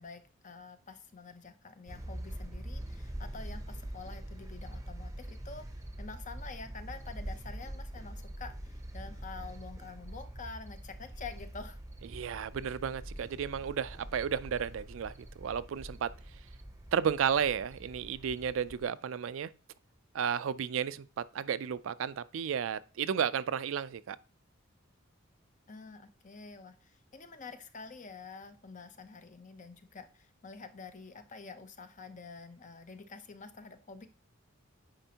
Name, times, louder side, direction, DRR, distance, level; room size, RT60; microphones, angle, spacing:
voice 1, 0.0-11.8 25.7-34.1, left 4 dB, 40° left, 0.7 m, -48 dB
sound 1, 1.9-18.8, right 1 dB, 15° right, 0.7 m, -44 dB
voice 2, 12.1-16.1 16.9-19.5 20.1-21.1 21.3-24.2, right 7 dB, 70° right, 0.4 m, -33 dB
8.9 x 5.1 x 2.8 m
head